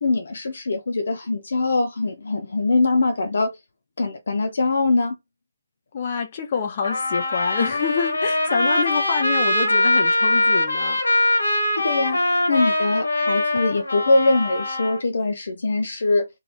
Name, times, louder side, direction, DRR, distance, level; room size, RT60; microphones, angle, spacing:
voice 1, 0.0-3.6 4.0-5.2 11.8-12.2 12.5-16.3, left 3 dB, 70° left, 0.4 m, -22 dB
voice 2, 5.9-11.0, left 6 dB, 40° left, 1.0 m, -26 dB
Trumpet, 6.8-15.0, left 1 dB, 85° left, 1.5 m, -22 dB
2.7 x 2.6 x 3.3 m
figure-of-eight pair, 150°, 0 cm